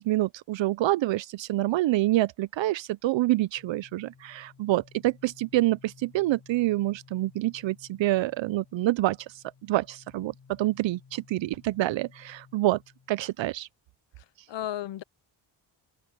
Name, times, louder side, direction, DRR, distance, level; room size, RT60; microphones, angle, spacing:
voice 1, 0.0-12.8 13.1-13.7, right 17 dB, 70° right, 0.5 m, -27 dB
sound 1, 3.6-13.3, left 5 dB, 50° left, 6.8 m, -56 dB
voice 2, 14.2-15.0, left 12 dB, 65° left, 0.8 m, -35 dB
open air
cardioid pair, 75°, 47 cm